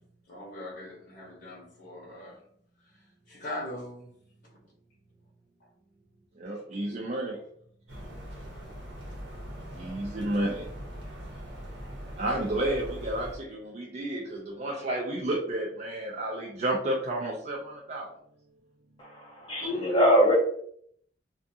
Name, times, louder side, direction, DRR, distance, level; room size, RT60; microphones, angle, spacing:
voice 1, 0.3-2.4 2.9-3.0 3.3-4.1 19.6-20.3, left 2 dB, 55° left, 0.8 m, -38 dB
voice 2, 6.4-7.4 9.8-10.7 12.2-18.1, right 1 dB, 35° right, 0.4 m, -31 dB
sound 1, 7.9-13.4, equal, 65° right, 0.9 m, -41 dB
voice 3, 19.0-20.3, equal, 25° left, 0.4 m, -23 dB
2.4 x 2.4 x 2.6 m
head